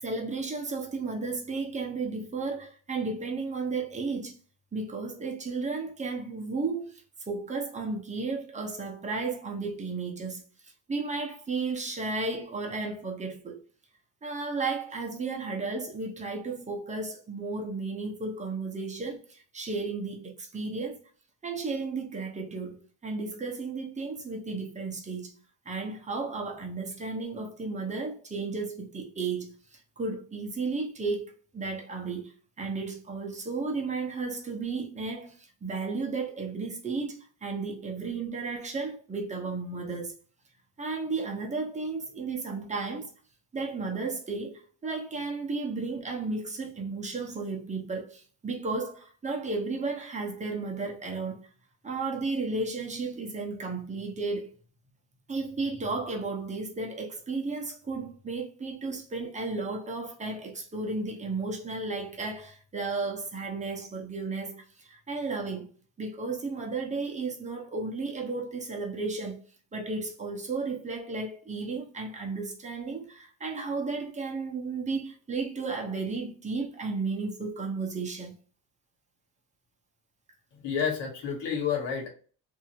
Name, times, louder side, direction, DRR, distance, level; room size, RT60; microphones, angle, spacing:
voice 1, 0.0-4.4 4.7-13.6 14.2-21.0 21.4-25.3 25.7-40.1 40.8-43.1 43.5-51.4 51.8-54.5 55.3-65.7 66.0-69.4 69.7-78.3, right 3 dB, 15° right, 0.8 m, -33 dB
voice 2, 80.6-82.1, left 7 dB, 65° left, 1.5 m, -30 dB
2.7 x 2.6 x 2.7 m
cardioid pair, 115°, 45 cm